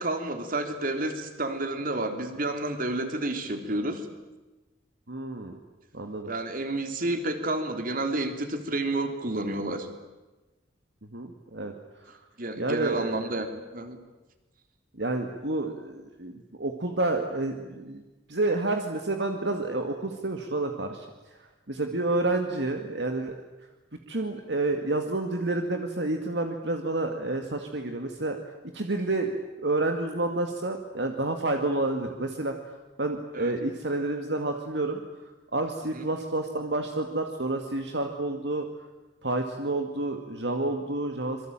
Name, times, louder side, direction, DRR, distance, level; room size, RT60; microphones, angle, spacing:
voice 1, 0.0-4.1 6.2-9.9 12.4-13.5 13.7-14.0 33.3-33.5 35.9-36.1, right 2 dB, 50° right, 6 dB, 3.5 m, -30 dB
voice 2, 5.1-5.6 5.9-6.3 11.1-11.7 12.0-12.1 12.6-13.2 15.0-18.0 18.3-21.1 21.4-23.3 24.1-28.4 28.7-29.3 29.6-32.5 33.0-35.0 35.5-38.7 39.2-41.4, right 2 dB, 70° right, 4 dB, 2.2 m, -29 dB
26.5 x 23.5 x 9.0 m, 1.1 s
head